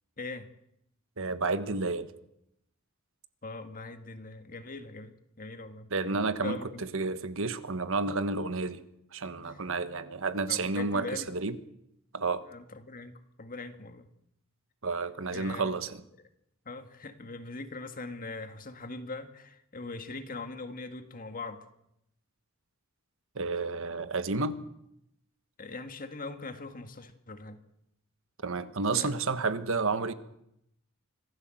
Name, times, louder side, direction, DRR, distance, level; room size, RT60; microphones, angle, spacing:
voice 1, 0.2-0.5 3.4-6.8 9.5-9.6 10.5-11.3 12.5-14.1 15.3-15.8 16.7-21.7 25.6-27.6 28.9-29.1, left 3 dB, 40° left, 1.8 m, -41 dB
voice 2, 1.2-2.1 5.9-8.8 9.1-11.6 12.1-12.4 14.8-16.0 23.3-24.6 28.4-30.1, right 3 dB, 65° right, 1.4 m, -31 dB
25.0 x 16.0 x 7.7 m
head